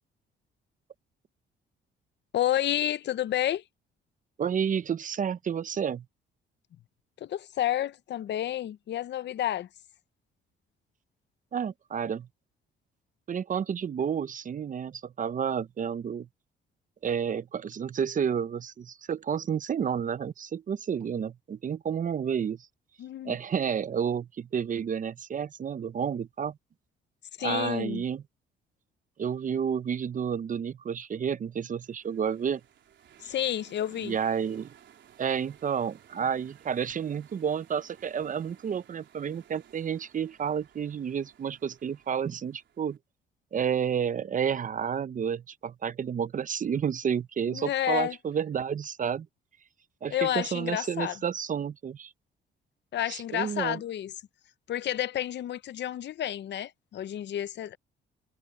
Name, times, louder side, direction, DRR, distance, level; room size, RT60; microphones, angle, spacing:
voice 1, 2.3-3.6 7.2-9.7 23.0-23.4 27.4-28.0 33.2-34.2 47.5-48.2 50.1-51.2 52.9-54.1 54.7-57.8, left 12 dB, 60° left, 0.7 m, -30 dB
voice 2, 4.4-6.0 11.5-12.3 13.3-16.3 17.0-22.7 23.2-26.6 27.4-28.2 29.2-32.6 33.2-33.3 34.0-34.7 35.2-43.0 43.5-49.3 50.0-52.1 53.1-53.8, right 7 dB, 40° right, 0.7 m, -30 dB
sound 1, 31.6-43.0, right 10 dB, 70° right, 3.9 m, -58 dB
cardioid pair, 90°, 20 cm